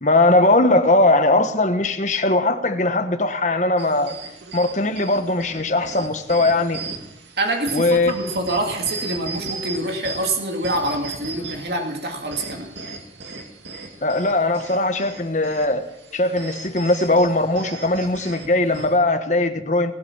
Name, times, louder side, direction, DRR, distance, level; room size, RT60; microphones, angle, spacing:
voice 1, 0.0-4.1 4.5-6.8 7.7-8.1 14.0-19.9, left 2 dB, 45° left, 1.3 m, -19 dB
sound 1, 3.8-19.0, right 4 dB, 85° right, 2.5 m, -37 dB
voice 2, 7.4-12.7, right 1 dB, 65° right, 2.5 m, -25 dB
20.0 x 8.7 x 7.4 m
head